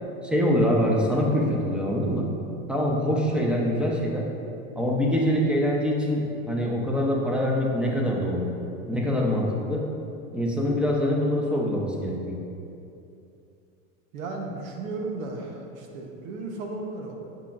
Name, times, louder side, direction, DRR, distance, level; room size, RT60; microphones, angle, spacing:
voice 1, 0.2-2.3 2.7-4.3 4.8-8.5 8.9-9.9 10.3-12.4, equal, ahead, -2 dB, 0.8 m, -24 dB
voice 2, 14.1-17.2, right 3 dB, 75° right, 2 dB, 1.1 m, -34 dB
8.2 x 6.0 x 2.6 m, 2.7 s
supercardioid pair, 115°, 41 cm